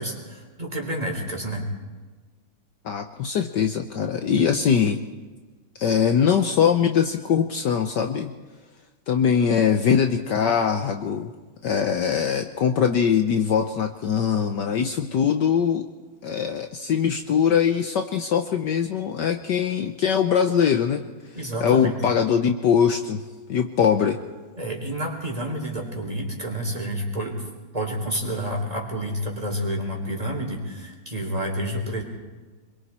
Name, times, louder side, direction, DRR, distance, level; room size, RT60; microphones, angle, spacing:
voice 1, 0.0-1.7 21.3-22.0 24.6-27.4 27.7-32.0, equal, 15° right, 0 dB, 3.8 m, -29 dB
voice 2, 2.8-5.0 5.8-8.3 9.1-11.3 11.6-15.9 16.2-21.1 21.6-23.2 23.5-24.2, left 7 dB, 65° left, 6 dB, 1.4 m, -22 dB
26.5 x 22.5 x 4.4 m, 1.3 s
omnidirectional pair, 2.3 m